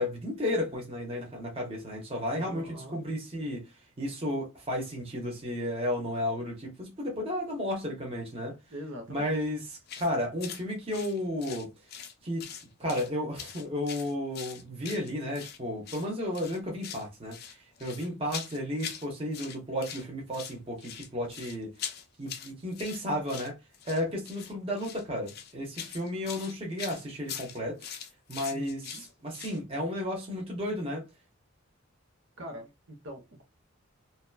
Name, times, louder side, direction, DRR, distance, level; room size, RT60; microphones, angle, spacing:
voice 1, 0.0-3.6 4.0-8.5 9.1-11.7 12.2-12.4 12.8-17.4 17.8-21.7 22.2-23.6 23.9-27.8 28.3-28.9 29.2-31.0, left 1 dB, 30° right, 0.8 m, -33 dB
voice 2, 2.3-3.0 8.7-9.3 28.5-29.0 32.4-33.4, equal, 65° right, 0.9 m, -43 dB
sound 1, 9.9-10.1 10.4-10.6 10.9-12.1 12.4-13.1 13.4-15.6 15.8-16.1 16.3-17.1 17.3-19.1 19.3-20.0 20.3-29.6, left 8 dB, 50° left, 0.4 m, -42 dB
2.8 x 2.2 x 2.2 m
head